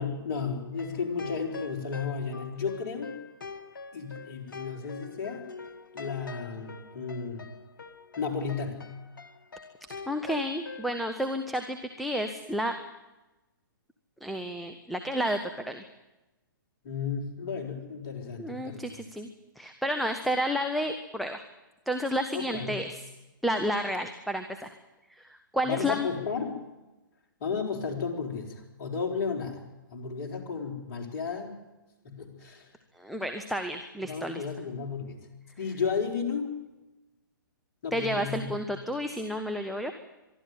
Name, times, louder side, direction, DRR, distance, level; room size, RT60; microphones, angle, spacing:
voice 1, 0.0-3.2 3.9-5.5 5.9-7.5 8.2-8.8 16.8-19.0 22.3-22.8 25.6-26.6 27.4-29.6 29.9-31.5 32.0-32.7 34.0-35.2 35.6-36.6 37.8-38.5, left 5 dB, 45° left, 1 dB, 4.5 m, -33 dB
sound 1, 0.8-10.9, left 4 dB, 65° left, 1.6 m, -44 dB
voice 2, 10.1-12.7 14.2-15.4 15.7-15.8 18.4-19.3 19.6-21.4 21.9-23.0 23.4-24.7 25.1-26.1 33.0-34.4 37.9-39.9, equal, ahead, 6 dB, 1.1 m, -31 dB
24.0 x 12.5 x 9.5 m, 1.0 s
figure-of-eight pair, 120°, 12 cm